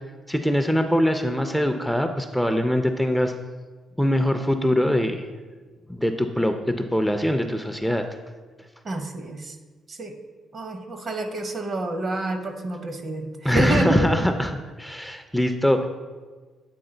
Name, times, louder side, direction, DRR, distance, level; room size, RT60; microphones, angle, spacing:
voice 1, 0.3-3.3 4.0-5.3 5.9-8.0 13.4-14.5 14.8-15.9, equal, ahead, 6 dB, 0.4 m, -22 dB
voice 2, 8.8-9.6 9.9-10.2 10.5-14.3, right 2 dB, 45° right, 6 dB, 0.7 m, -28 dB
7.9 x 3.8 x 3.8 m, 1.4 s
cardioid pair, 90°, 0 cm